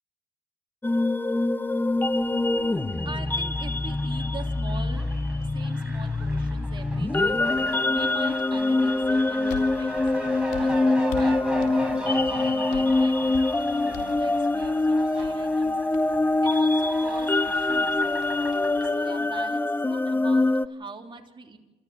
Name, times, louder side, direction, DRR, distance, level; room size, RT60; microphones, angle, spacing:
sound 1, 0.8-20.7, left 2 dB, 10° left, 0.6 m, -24 dB
Fowl, 2.0-19.4, right 1 dB, 5° right, 5.9 m, -40 dB
voice 1, 2.4-5.1 5.5-10.1 10.5-13.4 13.6-15.8 16.4-18.0 18.9-21.6, right 4 dB, 25° right, 2 dB, 3.3 m, -42 dB
sound 2, 9.0-18.9, left 7 dB, 80° left, 3.0 m, -44 dB
28.0 x 14.0 x 7.7 m, 1.1 s
supercardioid pair, 70°, 18 cm